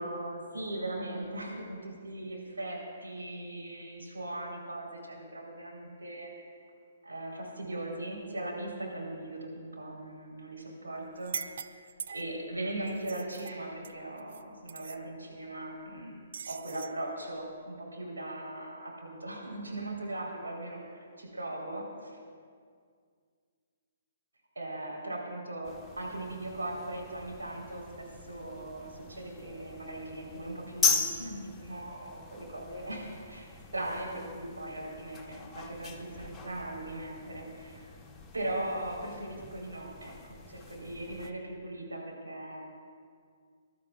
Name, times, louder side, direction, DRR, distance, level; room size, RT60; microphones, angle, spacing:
voice 1, 0.0-6.3 7.0-11.8 12.1-16.2 16.5-22.2 24.6-33.5 33.7-37.9 38.3-42.6, right 1 dB, 85° right, -3 dB, 3.9 m, -39 dB
sound 1, 11.2-12.4 12.9-14.4 14.7-15.0 16.3-17.0, right 6 dB, 60° right, 0.4 m, -42 dB
sound 2, 25.6-41.3, left 4 dB, 10° left, 1.0 m, -39 dB
22.5 x 12.5 x 2.4 m, 2.1 s
figure-of-eight pair, 130°, 0 cm